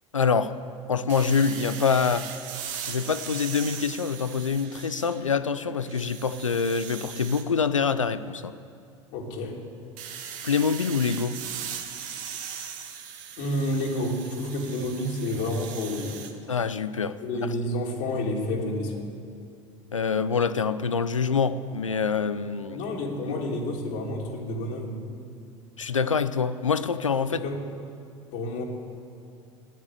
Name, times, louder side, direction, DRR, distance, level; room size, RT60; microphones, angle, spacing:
voice 1, 0.1-0.5 0.9-2.3 2.9-8.5 10.4-11.4 16.5-17.2 19.9-22.8 23.3-23.4 25.8-27.4, left 5 dB, 90° left, 13 dB, 0.6 m, -25 dB
sound 1, 1.1-5.4 5.8-7.5 10.0-16.3, right 8 dB, 50° right, 1.6 m, -39 dB
voice 2, 9.1-9.6 13.4-16.3 17.2-19.1 22.7-25.0 27.3-27.6 28.3-28.6, left 1 dB, 60° left, -1 dB, 2.9 m, -30 dB
15.0 x 9.7 x 9.8 m, 2.4 s
figure-of-eight pair, 75°, 16 cm